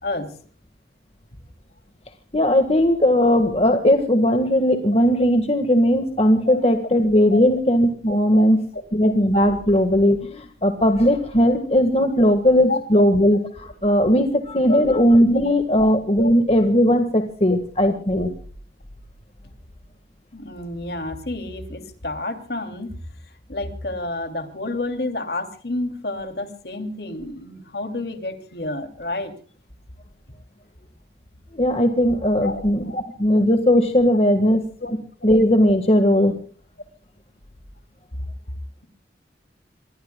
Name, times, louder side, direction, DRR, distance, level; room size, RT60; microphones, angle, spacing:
voice 1, 0.0-0.3 6.5-6.7 7.3-7.4 8.3-8.4 9.0-9.1 12.7-13.0 14.7-15.0 15.4-15.9 16.2-16.3 17.5-17.6 18.1-18.3 20.3-23.0 23.5-29.3 32.4-33.0 34.8-34.9, left 2 dB, 60° left, 7 dB, 2.9 m, -30 dB
voice 2, 2.3-8.6 8.9-18.3 31.5-34.6 35.2-36.3, equal, 35° left, 7 dB, 1.6 m, -18 dB
27.0 x 22.0 x 2.3 m, 0.43 s
head